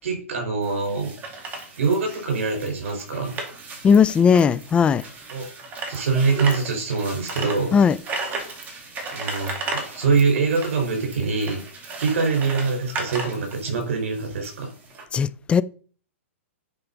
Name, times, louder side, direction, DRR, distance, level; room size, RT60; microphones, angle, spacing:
voice 1, 0.0-1.1 1.8-3.3 5.3-5.5 5.9-7.8 9.1-11.6 12.0-14.7, right 4 dB, 70° right, 4.7 m, -24 dB
sound 1, 0.6-15.0, right 3 dB, 20° right, 2.3 m, -35 dB
voice 2, 3.8-5.0 7.7-8.0 15.1-15.6, left 6 dB, 15° left, 0.4 m, -17 dB
10.0 x 4.7 x 5.4 m
hypercardioid pair, 135°, 7 cm